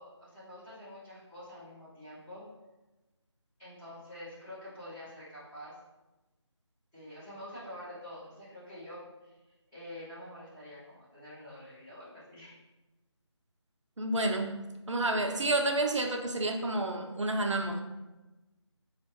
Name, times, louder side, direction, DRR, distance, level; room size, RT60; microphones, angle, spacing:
voice 1, 0.0-2.4 3.6-5.8 6.9-9.3 9.7-12.6, left 1 dB, 5° left, -15 dB, 1.1 m, -47 dB
voice 2, 14.0-14.5 14.9-17.8, right 2 dB, 80° right, 3 dB, 0.6 m, -29 dB
4.2 x 2.4 x 3.1 m, 1.1 s
figure-of-eight pair, 165°, 15 cm